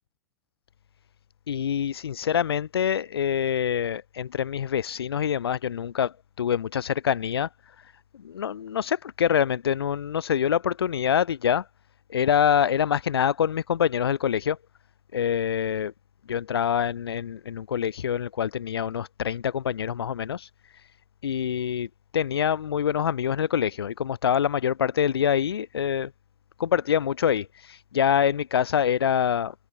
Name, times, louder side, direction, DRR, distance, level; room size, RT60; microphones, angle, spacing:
voice 1, 1.5-7.5 8.2-11.6 12.1-14.6 15.1-15.9 16.3-20.9 21.2-21.9 22.1-26.1 26.6-29.5, left 9 dB, 75° left, 1.2 m, -25 dB
hypercardioid pair, 100°, 13 cm